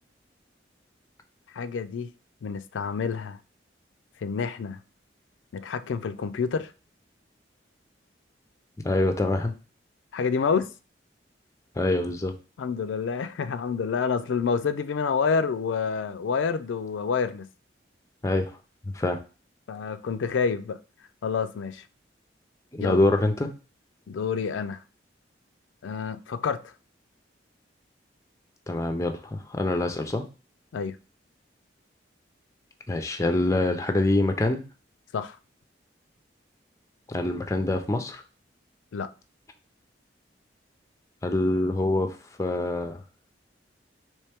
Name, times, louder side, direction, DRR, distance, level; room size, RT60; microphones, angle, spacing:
voice 1, 1.5-2.1 2.4-3.4 4.2-4.8 5.5-6.7 10.1-10.7 12.6-17.5 19.7-20.8 21.2-21.8 22.8-23.0 24.1-24.8 25.8-26.7 30.7-31.0 35.1-35.4 38.9-39.1, left 5 dB, 85° left, 0.4 m, -28 dB
voice 2, 8.8-9.5 11.8-12.3 18.2-18.5 18.9-19.2 22.7-23.5 28.7-30.2 32.9-34.6 37.1-38.2 41.2-43.0, left 2 dB, 15° left, 0.5 m, -25 dB
4.4 x 3.1 x 3.4 m
head